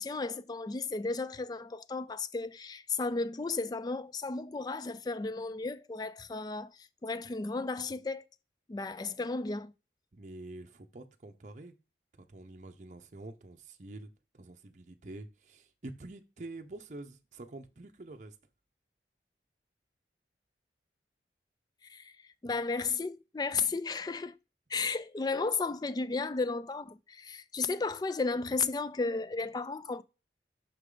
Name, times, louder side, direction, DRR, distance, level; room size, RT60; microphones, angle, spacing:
voice 1, 0.0-8.3 8.7-9.7 21.8-24.4 24.7-30.0, left 4 dB, 20° left, 0.3 m, -34 dB
voice 2, 10.1-11.7 12.2-18.4, right 2 dB, 45° right, 0.6 m, -47 dB
6.5 x 5.9 x 3.8 m
head